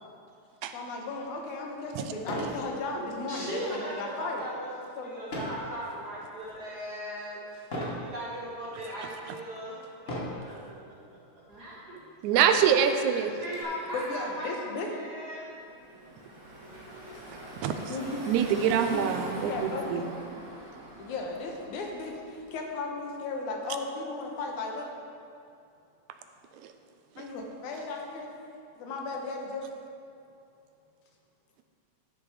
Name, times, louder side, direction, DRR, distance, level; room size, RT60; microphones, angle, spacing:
voice 1, 0.7-4.5 5.0-5.1 13.9-14.9 17.1-17.3 17.9-18.2 18.7-19.0 19.5-20.0 21.0-24.9 27.2-28.3 28.8-29.6, left 3 dB, 85° left, 1 dB, 2.5 m, -35 dB
sound 1, 1.3-1.4 2.2-2.6 3.1-3.4 5.3-5.7 6.3-6.7 7.7-8.1 8.8-8.9 10.0-10.5 11.5-11.6 12.0-12.1 12.5-13.6, equal, 35° left, 1.0 m, -36 dB
voice 2, 3.3-10.7 11.5-12.0 13.0-14.5 14.9-15.8, equal, 55° right, -6 dB, 1.1 m, -38 dB
voice 3, 12.2-13.3 17.6-17.7 18.3-20.1 26.6-26.7, right 8 dB, 85° right, 7 dB, 2.0 m, -25 dB
Car passing by / Traffic noise roadway noise, 15.6-22.6, right 1 dB, 40° right, 2.3 m, -42 dB
12.0 x 6.6 x 4.8 m, 2.6 s
omnidirectional pair, 3.4 m